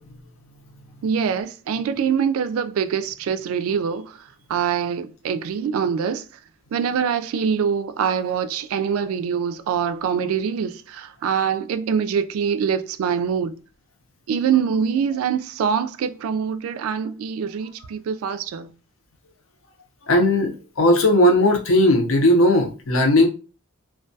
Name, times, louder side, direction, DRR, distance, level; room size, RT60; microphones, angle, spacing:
voice 1, 1.0-4.2 4.5-6.2 6.7-13.6 14.3-18.7, right 7 dB, 85° right, 0.3 m, -24 dB
voice 2, 20.1-23.3, left 1 dB, 75° left, 0.6 m, -17 dB
2.2 x 2.2 x 2.6 m
head